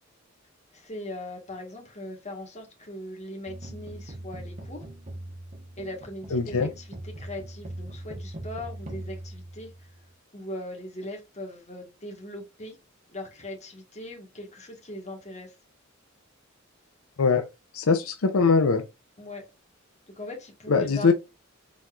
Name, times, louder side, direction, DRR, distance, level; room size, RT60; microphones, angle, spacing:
voice 1, 0.7-4.9 5.8-9.9 10.3-12.8 13.1-15.5 19.2-19.5 20.2-21.1, left 1 dB, 35° left, 1.6 m, -40 dB
sound 1, 3.5-10.1, right 1 dB, 35° right, 1.2 m, -41 dB
voice 2, 6.3-6.7 17.2-17.4 17.7-18.8 20.7-21.1, left 4 dB, 85° left, 0.6 m, -21 dB
4.3 x 4.1 x 2.4 m
head